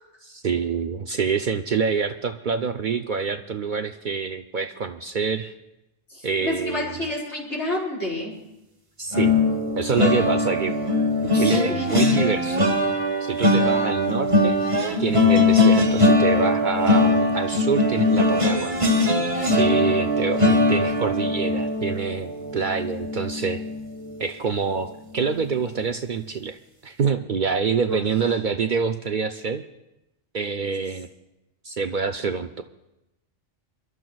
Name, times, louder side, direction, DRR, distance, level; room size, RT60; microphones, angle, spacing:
voice 1, 0.2-5.5 6.2-7.1 9.0-9.4 9.8-10.7 11.3-12.7 13.2-14.6 15.0-19.2 19.5-23.6 24.2-26.6 26.8-29.6 30.3-31.1 31.6-32.6, right 5 dB, 55° right, 7 dB, 0.6 m, -26 dB
voice 2, 6.1-8.4 11.3-12.0 19.3-20.1 27.9-28.0, left 1 dB, 75° left, -5 dB, 5.1 m, -30 dB
sound 1, 9.1-24.3 24.7-24.9 25.2-25.4, left 2 dB, 30° right, 1.2 m, -21 dB
28.0 x 12.5 x 2.3 m, 0.92 s
omnidirectional pair, 1.2 m